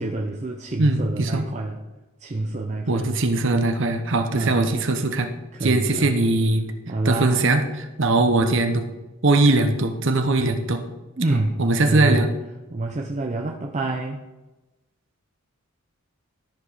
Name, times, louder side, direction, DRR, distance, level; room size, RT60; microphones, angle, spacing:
voice 1, 0.0-1.8 2.2-3.2 4.3-4.7 5.5-6.2 6.9-7.4 11.2-12.3 12.7-14.2, right 2 dB, 30° right, 0 dB, 0.6 m, -27 dB
voice 2, 0.8-1.4 2.9-5.3 5.6-6.7 7.0-7.6 8.0-8.9 9.2-10.8 11.3-12.3, right 2 dB, 60° right, 6 dB, 0.9 m, -20 dB
13.0 x 5.0 x 4.1 m, 1.1 s
head